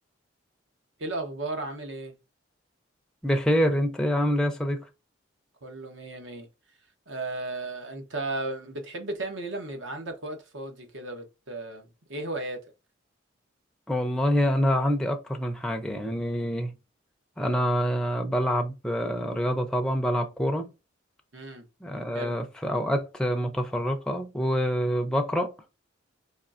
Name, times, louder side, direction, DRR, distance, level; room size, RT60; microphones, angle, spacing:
voice 1, 1.0-2.2 5.6-6.5 7.1-12.6 21.3-21.6 22.1-22.4, right 2 dB, 75° right, 1.0 m, -35 dB
voice 2, 3.2-4.9 13.9-16.7 17.4-20.7 21.8-25.5, equal, 5° left, 0.5 m, -26 dB
4.2 x 3.1 x 2.5 m
head